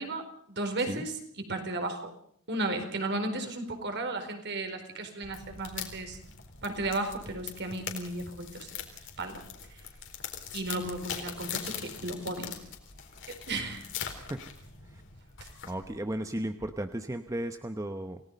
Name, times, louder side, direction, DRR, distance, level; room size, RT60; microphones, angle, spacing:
voice 1, 0.0-2.1 2.5-6.2 6.6-8.8 9.2-9.4 9.7-9.8 10.5-12.5 13.5-13.9 15.4-15.5, right 2 dB, 50° right, 6 dB, 4.4 m, -34 dB
sound 1, 5.2-16.0, left 8 dB, 60° left, 3.9 m, -42 dB
voice 2, 15.7-18.2, right 1 dB, 15° right, 8 dB, 0.8 m, -34 dB
28.5 x 18.5 x 5.4 m, 0.64 s
head